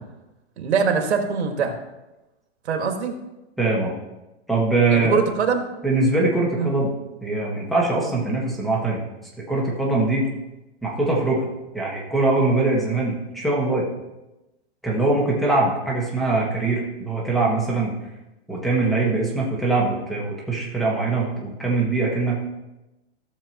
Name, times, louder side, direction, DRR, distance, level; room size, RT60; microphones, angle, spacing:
voice 1, 0.6-1.8 2.7-3.2 4.9-5.7 6.6-6.7, right 6 dB, 75° right, 4 dB, 1.9 m, -23 dB
voice 2, 3.6-3.9 4.5-5.2 5.8-6.9 7.2-9.0 9.5-10.3 10.8-11.5 11.7-13.9 14.8-17.9 18.5-22.4, right 3 dB, ahead, -3 dB, 1.5 m, -22 dB
16.0 x 7.0 x 3.0 m, 0.99 s
hypercardioid pair, 160°, 34 cm